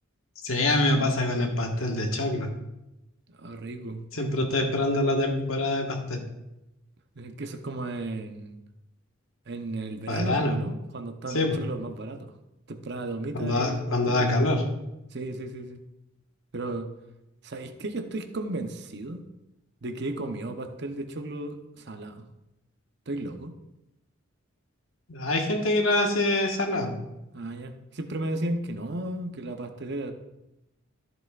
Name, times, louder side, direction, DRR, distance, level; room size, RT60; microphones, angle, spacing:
voice 1, 0.4-2.5 4.1-6.2 10.1-10.5 11.3-11.6 13.3-14.6 25.1-26.9, left 2 dB, 80° left, 2 dB, 1.5 m, -25 dB
voice 2, 3.4-4.0 7.2-8.6 9.5-12.3 12.7-14.3 15.1-15.8 16.5-16.9 17.4-19.2 19.8-22.3 23.1-23.5 27.3-30.1, right 2 dB, 55° right, 6 dB, 0.8 m, -34 dB
13.5 x 7.8 x 2.5 m, 0.92 s
head